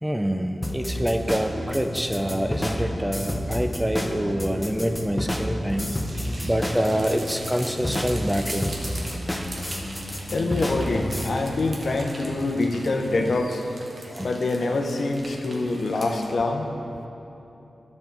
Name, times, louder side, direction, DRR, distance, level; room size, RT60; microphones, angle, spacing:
voice 1, 0.0-5.9 6.4-8.7 14.1-14.3, equal, 5° right, 6 dB, 0.6 m, -26 dB
sound 1, 0.6-11.3, left 1 dB, 15° left, 0.9 m, -30 dB
sound 2, 0.9-13.4, left 1 dB, 50° left, 1.1 m, -36 dB
sound 3, 5.6-16.3, right 1 dB, 60° right, 1.4 m, -41 dB
voice 2, 10.3-13.6 14.2-16.7, left 2 dB, 70° left, 4 dB, 0.7 m, -25 dB
11.0 x 5.4 x 4.5 m, 2.9 s
cardioid pair, 45°, 0 cm